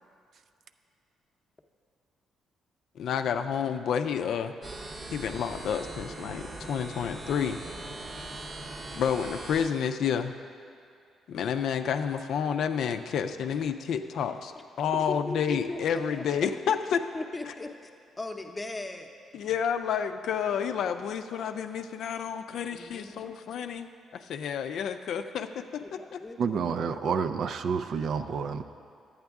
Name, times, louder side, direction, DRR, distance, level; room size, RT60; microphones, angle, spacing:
voice 1, 3.0-4.5 5.1-7.6 8.9-10.3 11.3-17.0 19.3-23.9 24.1-26.2, left 7 dB, 75° left, 8 dB, 0.4 m, -30 dB
sound 1, 4.6-9.7, right 2 dB, 40° right, 0.8 m, -40 dB
voice 2, 15.1-16.5 17.1-17.9 18.2-19.1 22.7-23.3 25.8-27.0, left 2 dB, 20° left, 4 dB, 0.7 m, -38 dB
voice 3, 26.4-28.6, right 6 dB, 65° right, 9 dB, 0.4 m, -29 dB
10.5 x 8.7 x 3.5 m, 2.4 s
cardioid pair, 90°, 0 cm